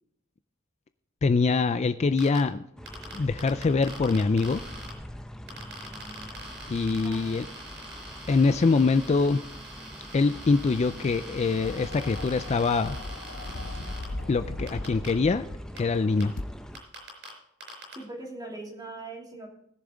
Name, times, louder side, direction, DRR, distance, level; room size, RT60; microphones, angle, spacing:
voice 1, 1.2-2.6 3.1-4.6 6.7-7.5 8.3-9.5 10.1-13.0 14.3-15.5 15.7-16.3, left 4 dB, 35° left, 11 dB, 0.4 m, -24 dB
sound 1, 2.2-2.4 2.9-4.9 5.5-14.0 14.7-15.1 15.8-15.9 16.2-16.3 16.7-17.3 17.6-17.9, right 1 dB, 60° right, 4.9 m, -44 dB
sound 2, 2.8-16.8, equal, 5° left, 0.7 m, -44 dB
voice 2, 7.0-7.4 17.9-19.5, right 2 dB, 20° right, -1 dB, 2.8 m, -41 dB
sound 3, 11.6-15.8 16.4-16.5, left 2 dB, 90° left, 0.9 m, -38 dB
20.0 x 7.1 x 3.8 m, 0.75 s
head